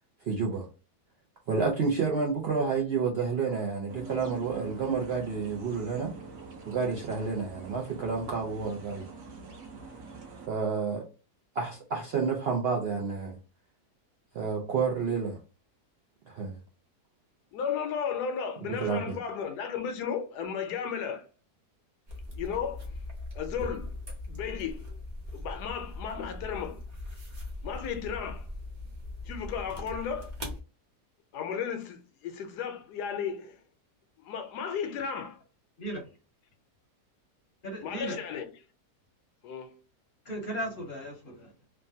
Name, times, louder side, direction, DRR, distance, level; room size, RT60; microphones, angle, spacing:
voice 1, 0.3-0.7 1.5-6.1 6.7-9.1 10.5-11.1 11.6-13.4 14.3-15.4 16.3-16.5 18.7-19.2, right 5 dB, 85° right, 0.5 m, -30 dB
sound 1, 3.9-10.5, right 4 dB, 65° right, 1.0 m, -45 dB
voice 2, 17.5-21.3 22.3-22.9 23.4-23.9 24.3-24.8 25.3-26.8 27.6-28.5 29.2-30.3 31.3-33.6 34.2-35.4 37.8-38.5 39.4-39.7, left 7 dB, 80° left, 1.1 m, -34 dB
sound 2, 22.1-30.6, left 2 dB, 35° right, 0.7 m, -40 dB
voice 3, 37.6-38.2 40.3-41.5, right 1 dB, 45° left, 0.7 m, -36 dB
3.1 x 2.2 x 2.6 m
omnidirectional pair, 1.7 m